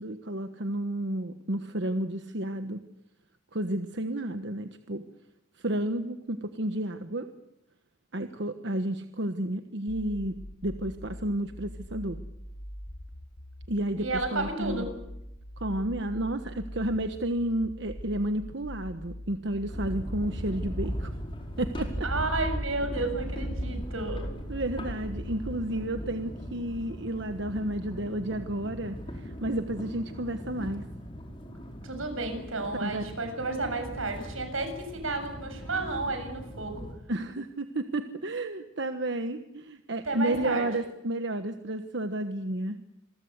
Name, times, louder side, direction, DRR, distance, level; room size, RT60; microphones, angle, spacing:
voice 1, 0.0-2.8 3.5-5.0 5.6-7.3 8.1-12.2 13.7-14.8 15.6-21.1 21.6-21.9 24.5-30.8 32.8-33.0 37.1-42.8, right 1 dB, 60° right, 8 dB, 1.3 m, -31 dB
sound 1, 9.9-25.9, equal, 75° left, 6.9 m, -43 dB
voice 2, 14.0-14.9 22.0-24.3 31.8-36.9 40.0-40.7, right 2 dB, 85° right, 7 dB, 7.0 m, -32 dB
sound 2, 19.7-36.9, equal, 25° left, 4.9 m, -38 dB
28.0 x 22.5 x 8.2 m, 0.84 s
head